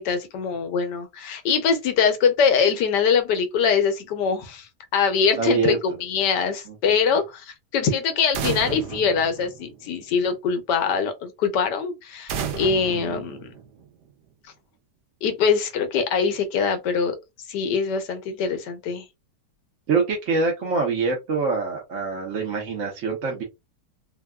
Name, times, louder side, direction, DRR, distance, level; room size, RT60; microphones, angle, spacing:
voice 1, 0.0-13.5 15.2-17.2 17.5-19.1, left 6 dB, 80° left, 1.3 m, -23 dB
voice 2, 5.4-5.8 6.7-6.9 12.7-13.2 19.9-23.4, right 4 dB, 55° right, 1.0 m, -25 dB
sound 1, 8.3-10.1 12.3-14.1, right 7 dB, 80° right, 1.2 m, -33 dB
3.5 x 2.2 x 2.2 m
omnidirectional pair, 1.8 m